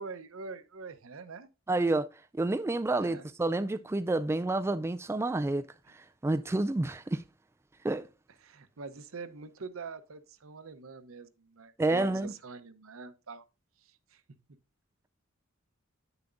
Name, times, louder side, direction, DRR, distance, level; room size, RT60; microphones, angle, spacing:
voice 1, 0.0-1.5 2.9-3.3 8.4-13.4 13.8-14.2, right 4 dB, 75° right, 0.8 m, -44 dB
voice 2, 1.7-2.1 2.3-7.2 7.8-8.1 11.8-12.3, right 2 dB, 10° right, 0.3 m, -29 dB
9.1 x 6.9 x 2.5 m
head